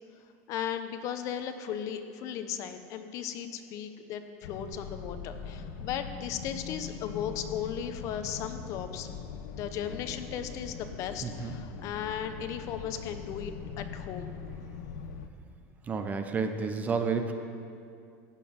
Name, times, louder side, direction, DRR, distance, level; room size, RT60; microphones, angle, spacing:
voice 1, 0.5-9.1 9.5-14.3, left 8 dB, 40° left, 8 dB, 0.8 m, -36 dB
sound 1, 4.4-15.3, left 7 dB, 85° left, 0.9 m, -41 dB
voice 2, 11.2-11.6 15.8-17.3, right 5 dB, 20° right, 7 dB, 0.6 m, -30 dB
15.5 x 6.1 x 8.7 m, 2.4 s
cardioid pair, 170°, 8 cm